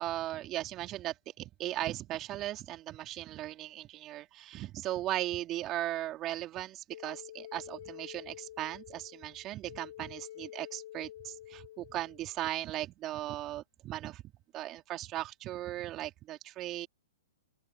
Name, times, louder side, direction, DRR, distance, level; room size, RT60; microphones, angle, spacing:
voice 1, 0.0-14.2 14.5-16.9, right 14 dB, 30° right, 3.4 m, -37 dB
sound 1, 6.9-12.5, left 13 dB, 60° left, 7.1 m, -49 dB
open air
hypercardioid pair, 120°, 0 cm